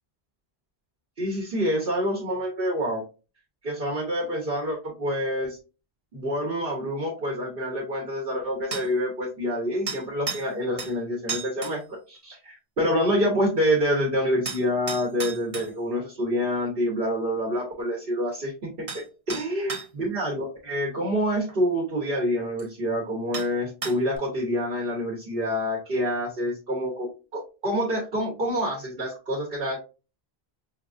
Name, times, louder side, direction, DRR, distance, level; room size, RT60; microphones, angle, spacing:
voice 1, 1.2-3.0 3.6-5.6 6.1-29.8, equal, 60° right, -3 dB, 1.2 m, -27 dB
sound 1, 8.7-8.9 9.9-10.5 10.8-10.9 11.3-11.8 14.5-15.7 18.3-18.4 18.9-19.0 19.3-19.9 21.5-21.6 22.6-22.7 23.3-23.5 23.8-24.2, right 4 dB, 35° right, 0.8 m, -33 dB
5.1 x 2.4 x 2.5 m, 0.31 s
omnidirectional pair, 1.1 m